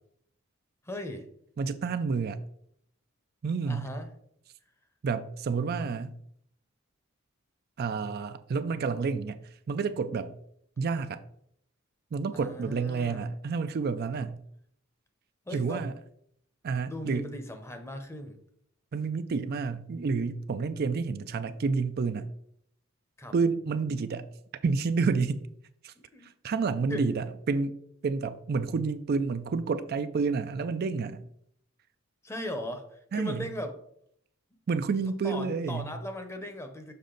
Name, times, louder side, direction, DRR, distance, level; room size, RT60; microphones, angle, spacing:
voice 1, 0.8-1.3 3.7-4.1 12.3-13.3 15.5-15.8 16.9-18.4 23.2-23.3 25.9-26.3 26.9-27.0 32.2-33.7 34.9-35.0 35.2-36.9, left 1 dB, 15° left, 6 dB, 0.8 m, -38 dB
voice 2, 1.6-2.4 3.4-3.9 5.0-6.2 7.8-10.3 10.8-11.2 12.1-14.4 15.5-15.9 16.6-17.3 18.9-22.3 23.3-24.3 24.6-25.4 25.8-25.9 26.2-31.2 33.1-33.4 34.7-35.9, right 4 dB, 50° right, 11 dB, 0.4 m, -29 dB
6.7 x 5.2 x 3.9 m, 0.70 s
head